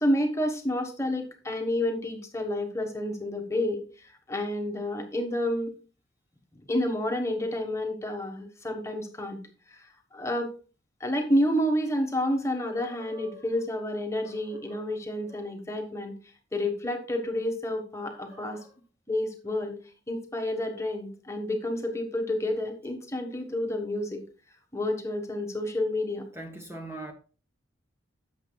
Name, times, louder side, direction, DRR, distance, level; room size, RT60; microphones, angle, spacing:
voice 1, 0.0-5.7 6.5-9.4 9.7-9.8 10.1-10.5 11.0-16.1 16.5-18.6 19.1-19.8 20.1-24.2 24.7-26.3, left 1 dB, 15° left, 1.2 m, -29 dB
voice 2, 12.7-13.4 14.2-14.9 18.0-18.7 26.3-27.1, right 2 dB, 15° right, 1.0 m, -44 dB
11.5 x 7.3 x 2.3 m
head